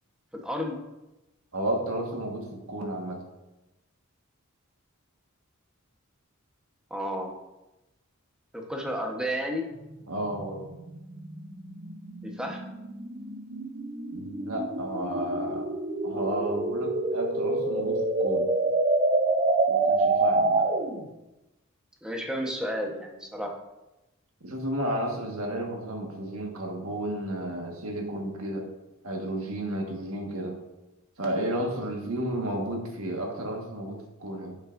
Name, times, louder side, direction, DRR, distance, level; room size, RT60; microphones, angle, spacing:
voice 1, 0.3-0.8 6.9-7.3 8.5-9.7 12.2-12.6 22.0-23.5, equal, 5° right, 1 dB, 1.1 m, -32 dB
voice 2, 1.5-3.2 10.1-10.6 14.1-15.7 16.0-18.5 19.7-20.7 24.4-28.7 29.0-30.6 31.2-34.6, right 1 dB, 85° right, 1 dB, 1.6 m, -32 dB
sound 1, 9.7-21.1, right 3 dB, 35° right, 0.7 m, -27 dB
10.5 x 7.2 x 2.6 m, 0.98 s
head